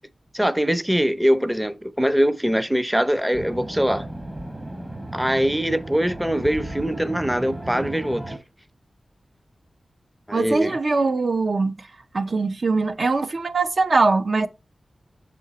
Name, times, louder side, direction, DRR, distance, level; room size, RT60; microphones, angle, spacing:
voice 1, 0.3-4.1 5.1-8.3 10.3-10.8, equal, 5° right, 0.5 m, -22 dB
sound 1, 3.3-8.4, right 1 dB, 25° right, 0.9 m, -34 dB
voice 2, 10.3-11.8 12.1-14.5, right 3 dB, 60° right, 0.5 m, -21 dB
6.6 x 3.8 x 4.0 m
cardioid pair, 55°, 0 cm